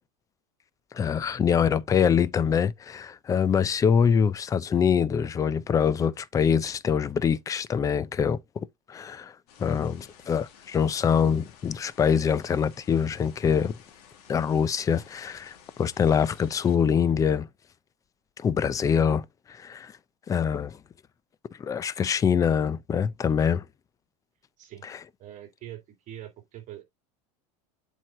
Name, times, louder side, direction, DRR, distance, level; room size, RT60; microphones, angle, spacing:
voice 1, 0.9-9.3 9.6-13.8 14.3-17.5 18.4-19.9 20.3-20.8 21.6-23.6 24.8-25.0, left 7 dB, 15° left, 0.4 m, -24 dB
sound 1, 9.5-16.8, left 8 dB, 80° left, 2.3 m, -54 dB
voice 2, 25.2-25.8 26.1-26.8, right 12 dB, 40° right, 2.8 m, -43 dB
7.7 x 4.5 x 3.7 m
supercardioid pair, 150°, 20 cm